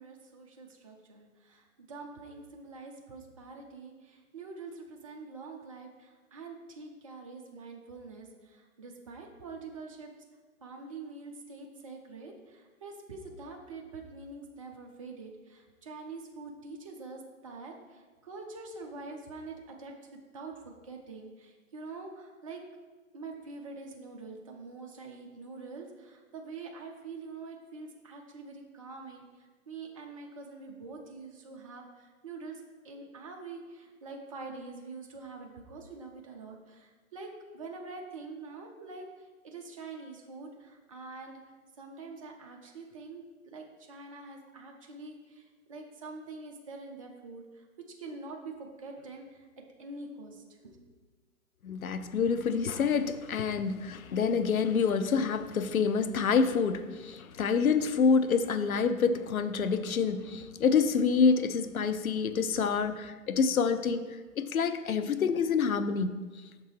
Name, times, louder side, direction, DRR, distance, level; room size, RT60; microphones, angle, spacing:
voice 1, 0.0-10.1 10.6-19.9 20.3-22.6 23.1-41.4 41.8-47.7 48.0-49.5 49.8-50.9, right 3 dB, 25° right, 1 dB, 0.5 m, -45 dB
voice 2, 51.6-64.0 64.4-66.2, left 5 dB, 80° left, 11 dB, 0.6 m, -27 dB
6.4 x 3.7 x 4.7 m, 1.3 s
figure-of-eight pair, 130°, 42 cm